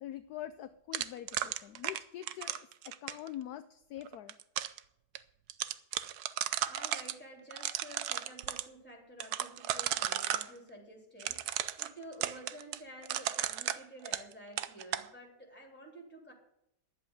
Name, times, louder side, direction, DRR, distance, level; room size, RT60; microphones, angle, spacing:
voice 1, 0.0-4.4, left 12 dB, 70° left, 11 dB, 1.1 m, -44 dB
sound 1, 0.9-3.3 4.1-4.8 5.2-5.3 5.5-7.1 7.5-8.6 9.2-10.5 11.2-14.3 14.6-15.1, right 11 dB, 70° right, 1.1 m, -34 dB
voice 2, 6.7-16.3, right 1 dB, 5° left, 0 dB, 3.6 m, -51 dB
11.5 x 7.8 x 9.1 m, 0.76 s
omnidirectional pair, 1.9 m